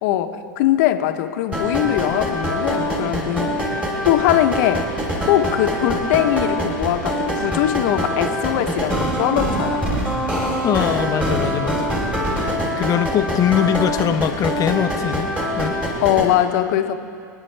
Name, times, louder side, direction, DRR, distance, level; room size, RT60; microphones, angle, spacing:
voice 1, 0.0-3.7 4.0-4.9 5.3-9.8 16.0-16.9, left 12 dB, 60° left, 7 dB, 1.0 m, -21 dB
sound 1, 1.5-16.3, equal, 10° right, 3.3 m, -24 dB
voice 2, 10.6-11.9 12.3-15.8, left 9 dB, 35° left, 9 dB, 0.8 m, -22 dB
26.5 x 10.0 x 3.4 m, 2.4 s
hypercardioid pair, 105°, 11 cm